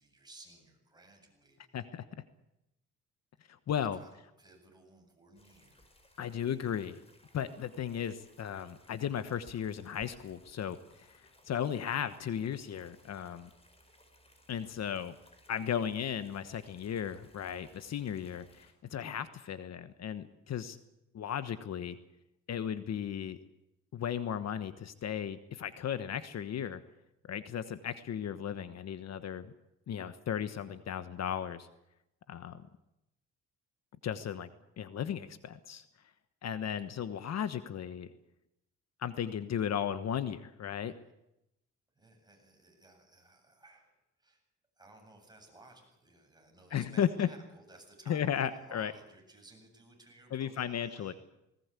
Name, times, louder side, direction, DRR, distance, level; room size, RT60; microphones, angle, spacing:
voice 1, 0.0-1.7 3.9-5.8 42.0-43.9 44.2-44.4 44.8-51.2, right 2 dB, 15° right, 1 dB, 8.0 m, -57 dB
voice 2, 1.7-2.0 3.7-4.0 6.2-7.0 7.3-13.5 14.5-15.1 15.5-20.8 21.1-22.0 22.5-23.4 23.9-26.8 27.3-29.5 29.9-31.7 32.3-32.7 34.0-34.5 34.8-35.8 36.4-38.1 39.0-40.9 46.7-47.3 48.1-48.9 50.3-51.1, left 9 dB, 60° left, 12 dB, 1.3 m, -35 dB
sound 1, 5.3-18.7, left 1 dB, 20° left, 5.5 m, -63 dB
19.5 x 19.5 x 8.4 m, 0.86 s
cardioid pair, 90°, 30 cm